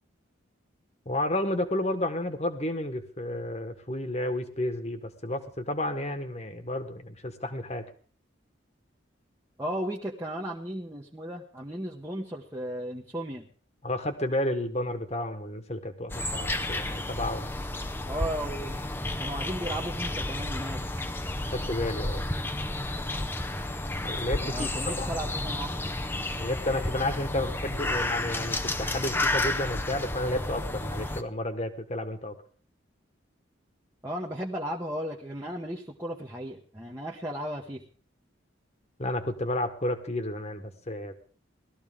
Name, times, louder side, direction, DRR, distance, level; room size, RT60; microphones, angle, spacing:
voice 1, 1.0-7.8 13.8-17.5 21.5-22.3 24.0-24.7 25.0-25.1 26.3-32.3 39.0-41.1, left 1 dB, 35° left, 8 dB, 1.5 m, -31 dB
voice 2, 9.6-13.5 18.1-18.8 19.2-20.8 24.4-25.7 34.0-37.8, right 1 dB, 15° right, -2 dB, 1.1 m, -35 dB
sound 1, 16.1-31.2, left 2 dB, 10° left, 0.6 m, -31 dB
19.0 x 13.5 x 3.7 m, 0.43 s
head